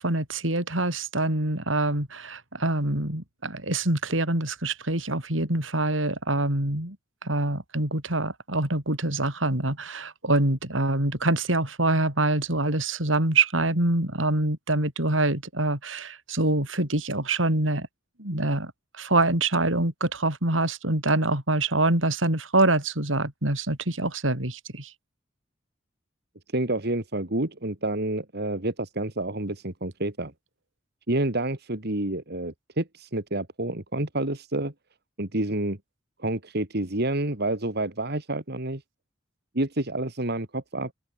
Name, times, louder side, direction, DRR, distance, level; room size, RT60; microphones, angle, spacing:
voice 1, 0.0-7.0 7.2-17.9 18.2-18.7 19.0-24.9, right 2 dB, 85° right, 6.1 m, -25 dB
voice 2, 26.5-30.3 31.1-34.7 35.2-35.8 36.2-38.8 39.5-40.9, right 2 dB, 60° right, 2.7 m, -28 dB
open air
head